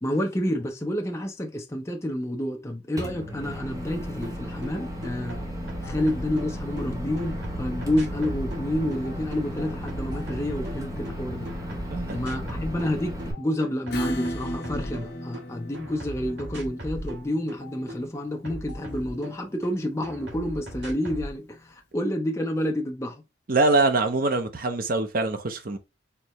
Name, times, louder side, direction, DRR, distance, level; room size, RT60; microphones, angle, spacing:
voice 1, 0.0-5.4 5.8-11.5 12.1-23.2, left 1 dB, 15° left, 0.6 m, -29 dB
Microwave oven, 3.0-13.3, equal, 20° right, 1.1 m, -34 dB
sound 1, 4.2-4.3 4.6-6.8 7.2-11.1 11.4-12.9 13.2-15.4 15.7-19.7 20.0-21.3, equal, 70° right, 1.9 m, -38 dB
voice 2, 11.9-12.2 23.5-25.8, right 2 dB, 50° right, 0.8 m, -23 dB
Acoustic guitar / Strum, 13.9-21.1, equal, 60° left, 1.0 m, -36 dB
4.5 x 3.3 x 3.1 m
head